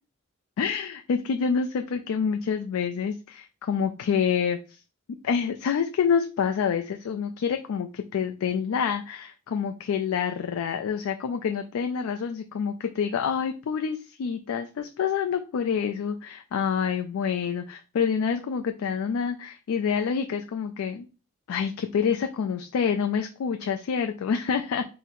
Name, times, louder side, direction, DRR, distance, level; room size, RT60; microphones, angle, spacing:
voice 1, 0.6-4.8 5.2-21.1 21.5-24.8, left 6 dB, 80° left, 6 dB, 0.3 m, -27 dB
3.7 x 2.0 x 4.2 m, 0.34 s
head